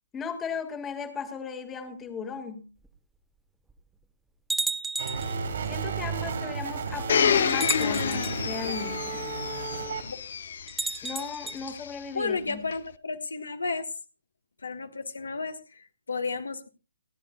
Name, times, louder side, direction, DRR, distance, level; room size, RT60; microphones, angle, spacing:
voice 1, 0.1-2.7 5.7-9.3 11.0-12.6, left 6 dB, 15° left, 8 dB, 1.6 m, -36 dB
sound 1, 2.8-2.9 3.7-3.8 4.5-5.3 6.5-6.6 7.5-8.4 10.7-11.6, right 3 dB, 5° right, 0.9 m, -32 dB
sound 2, 5.0-10.0, right 5 dB, 55° right, 3.0 m, -33 dB
Domestic sounds home sounds, 7.1-11.9 12.7-12.8, left 7 dB, 50° left, 0.6 m, -29 dB
voice 2, 12.1-13.9 14.6-16.7, left 4 dB, 70° left, 9 dB, 1.3 m, -33 dB
29.0 x 10.0 x 2.2 m, 0.30 s
figure-of-eight pair, 130°, 0 cm